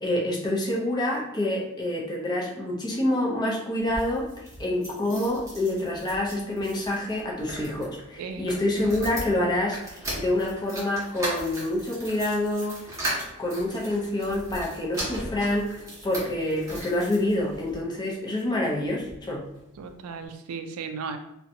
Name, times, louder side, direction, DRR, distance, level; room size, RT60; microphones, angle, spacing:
voice 1, 0.0-4.3 4.6-12.8 13.4-19.5, left 1 dB, 20° left, -2 dB, 0.5 m, -27 dB
sound 1, 3.8-17.8 18.4-19.2 19.5-19.6 19.9-20.0, equal, 15° right, 0.7 m, -38 dB
voice 2, 19.8-21.2, right 5 dB, 70° right, 8 dB, 0.3 m, -35 dB
2.6 x 2.1 x 2.6 m, 0.84 s
head